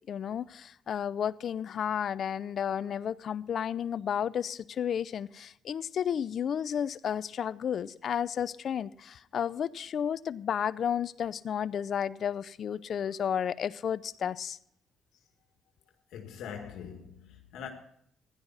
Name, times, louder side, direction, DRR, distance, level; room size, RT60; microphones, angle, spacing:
voice 1, 0.1-14.6, left 8 dB, 60° left, 0.6 m, -32 dB
voice 2, 16.1-17.7, left 7 dB, 85° left, 1.9 m, -42 dB
16.0 x 11.5 x 4.1 m
cardioid pair, 90°, 0 cm